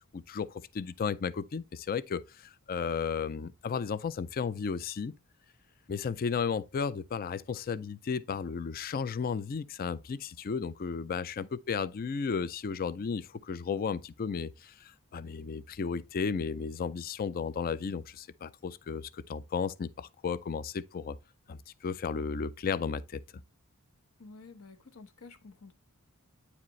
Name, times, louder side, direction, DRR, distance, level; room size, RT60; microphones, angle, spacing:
voice 1, 0.1-5.1 5.9-21.2 21.5-23.2, left 5 dB, 40° left, 0.4 m, -34 dB
voice 2, 24.2-25.7, left 3 dB, 70° left, 1.1 m, -51 dB
9.5 x 5.0 x 3.1 m
head